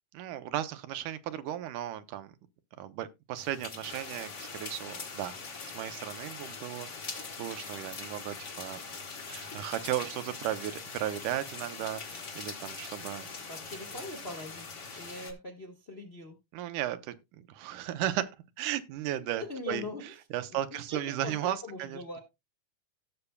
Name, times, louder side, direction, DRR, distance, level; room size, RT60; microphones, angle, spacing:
voice 1, 0.1-2.4 2.8-5.4 5.7-13.3 14.9-15.0 16.5-18.3 18.6-22.0, right 12 dB, 80° right, 2.3 m, -36 dB
sound 1, 3.4-15.3, left 4 dB, 70° left, 0.6 m, -42 dB
voice 2, 13.5-14.6 14.9-16.4 19.2-20.1 20.5-22.2, left 2 dB, 40° left, 0.9 m, -42 dB
17.0 x 6.8 x 2.2 m
omnidirectional pair, 3.6 m